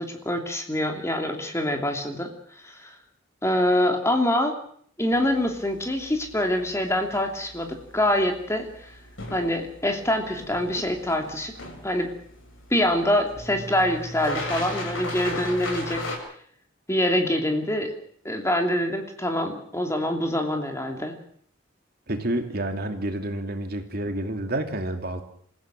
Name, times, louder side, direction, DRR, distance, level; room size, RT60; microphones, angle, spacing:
voice 1, 0.0-2.3 2.6-2.9 3.4-4.5 5.0-8.9 9.3-11.5 11.8-12.1 12.7-16.0 16.9-17.9 18.2-21.2, left 1 dB, 15° left, 4 dB, 2.9 m, -25 dB
sound 1, 5.1-16.2, left 1 dB, 75° left, 8.0 m, -37 dB
voice 2, 22.1-25.2, right 1 dB, 50° right, 5 dB, 2.7 m, -29 dB
27.0 x 16.0 x 7.7 m, 0.62 s
head